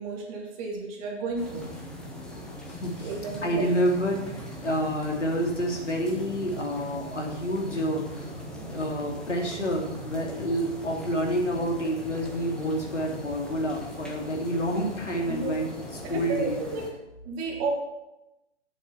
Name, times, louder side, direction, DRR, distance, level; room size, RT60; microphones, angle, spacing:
voice 1, 0.0-1.7 3.0-3.7 15.2-15.6 16.0-16.9 17.2-17.7, right 4 dB, 25° right, 1 dB, 2.0 m, -32 dB
sound 1, 1.4-16.9, equal, ahead, 1.0 m, -40 dB
voice 2, 2.7-3.1 3.4-15.8 16.1-16.6, equal, 90° left, 0 dB, 3.1 m, -28 dB
8.3 x 7.2 x 7.2 m, 0.92 s
figure-of-eight pair, 135°, 35 cm